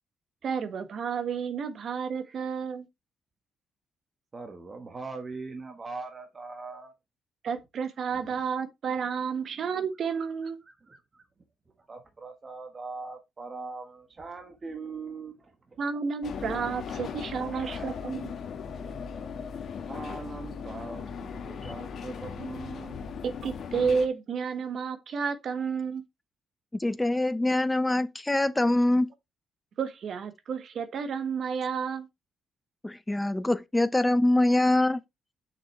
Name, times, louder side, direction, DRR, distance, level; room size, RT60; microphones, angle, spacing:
voice 1, 0.4-2.9 7.4-10.6 15.8-18.3 23.2-26.0 29.8-32.1, right 6 dB, 60° right, 1.3 m, -31 dB
voice 2, 4.3-6.9 8.1-8.2 9.4-9.7 10.6-11.2 11.9-15.8 16.9-18.0 19.0-19.1 19.8-23.0, right 3 dB, 30° right, 1.4 m, -42 dB
sound 1, 16.2-24.1, left 6 dB, 60° left, 1.4 m, -38 dB
voice 3, 26.7-29.1 32.8-35.0, left 1 dB, 10° left, 0.7 m, -24 dB
6.6 x 6.1 x 3.2 m
cardioid pair, 105°, 0 cm